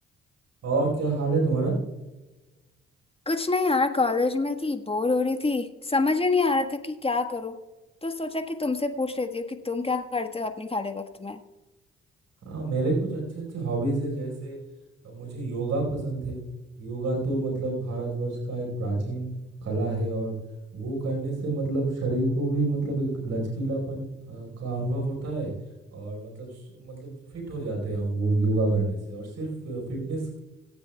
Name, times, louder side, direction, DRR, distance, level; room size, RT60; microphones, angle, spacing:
voice 1, 0.6-1.8 12.4-14.6 15.0-16.4 16.8-20.3 20.7-25.5 25.9-30.4, right 2 dB, 60° right, 0 dB, 5.0 m, -28 dB
voice 2, 3.3-7.6 8.0-11.4, left 3 dB, 20° left, 6 dB, 1.5 m, -26 dB
25.5 x 9.6 x 2.4 m, 1.1 s
hypercardioid pair, 45°, 29 cm